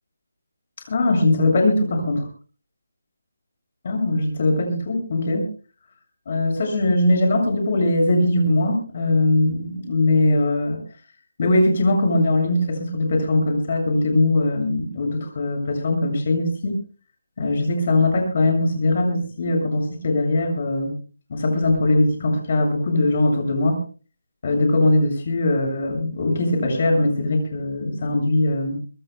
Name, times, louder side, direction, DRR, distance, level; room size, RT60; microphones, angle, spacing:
voice 1, 0.9-2.3 3.8-5.4 6.3-10.8 11.4-16.8 17.4-20.9 21.3-23.8 24.4-28.7, left 2 dB, 35° left, 3 dB, 7.3 m, -20 dB
24.5 x 22.0 x 2.3 m, 0.37 s
hypercardioid pair, 175°, 0 cm